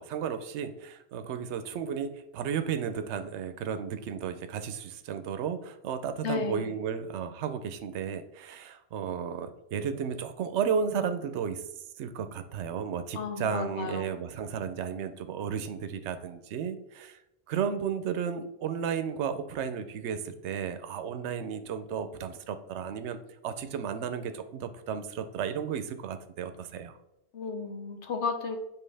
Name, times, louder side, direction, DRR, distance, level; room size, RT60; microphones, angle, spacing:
voice 1, 0.0-11.6 12.0-17.2 17.5-26.9, right 7 dB, 70° right, 10 dB, 0.9 m, -33 dB
voice 2, 6.2-6.7 13.1-14.2 27.3-28.6, left 4 dB, 70° left, 6 dB, 1.1 m, -33 dB
7.5 x 4.4 x 3.3 m, 0.89 s
omnidirectional pair, 1.2 m